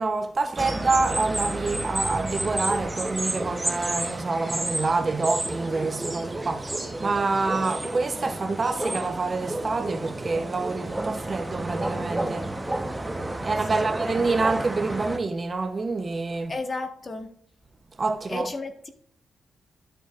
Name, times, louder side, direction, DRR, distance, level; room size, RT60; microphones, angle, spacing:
voice 1, 0.0-12.5 13.4-16.5 18.0-18.5, right 3 dB, 40° right, 0.8 m, -27 dB
sound 1, 0.6-15.2, right 2 dB, 15° right, 1.0 m, -31 dB
voice 2, 16.5-17.3 18.3-18.9, left 2 dB, 40° left, 1.4 m, -33 dB
12.0 x 6.9 x 2.5 m
cardioid pair, 60°, 0 cm